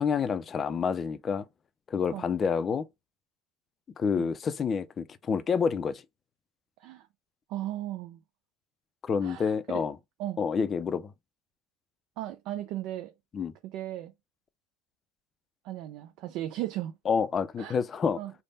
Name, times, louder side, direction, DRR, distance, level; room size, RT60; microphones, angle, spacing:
voice 1, 0.0-1.5 1.9-2.9 4.0-6.0 9.0-10.0 10.4-11.1 13.3-13.5 17.1-18.2, left 6 dB, 30° left, 0.4 m, -28 dB
voice 2, 7.5-8.2 9.2-9.8 10.2-10.4 12.2-13.1 13.6-14.1 15.6-16.9 17.6-17.8 18.2-18.3, right 14 dB, 65° right, 0.4 m, -36 dB
3.4 x 2.1 x 4.0 m
supercardioid pair, 105°, 0 cm